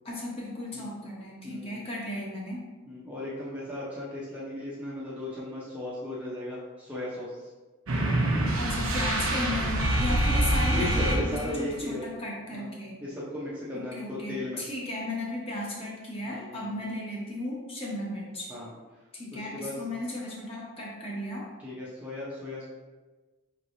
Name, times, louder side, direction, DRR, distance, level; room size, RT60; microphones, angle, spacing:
voice 1, 0.0-2.6 8.6-12.9 13.9-18.5 19.1-21.4, left 1 dB, 25° left, -4 dB, 0.9 m, -35 dB
voice 2, 1.4-1.8 2.9-7.5 10.7-12.0 12.5-12.7 13.0-14.6 16.2-16.7 18.5-18.7 19.3-19.7 21.6-22.7, left 1 dB, 5° right, -8 dB, 0.7 m, -36 dB
sound 1, 7.9-11.7, right 1 dB, 75° right, 0.7 m, -26 dB
5.2 x 3.2 x 2.6 m, 1.3 s
head